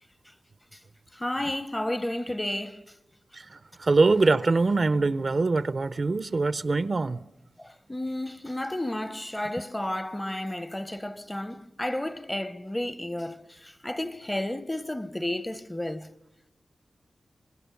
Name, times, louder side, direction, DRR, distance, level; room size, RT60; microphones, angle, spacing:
voice 1, 1.1-2.8 7.6-16.1, left 1 dB, 15° left, 1.0 m, -32 dB
voice 2, 3.3-7.2, right 3 dB, 55° right, 0.7 m, -23 dB
26.5 x 19.0 x 7.1 m
cardioid pair, 45°, 0 cm